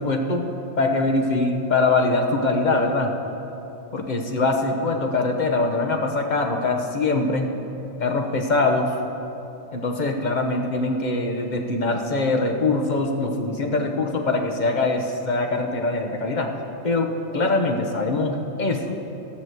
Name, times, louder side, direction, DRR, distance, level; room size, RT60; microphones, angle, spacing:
voice 1, 0.0-3.1 3.9-7.5 8.0-8.9 9.7-16.5 16.8-19.0, left 3 dB, 35° left, 3 dB, 1.0 m, -23 dB
13.5 x 6.1 x 8.0 m, 3.0 s
omnidirectional pair, 1.4 m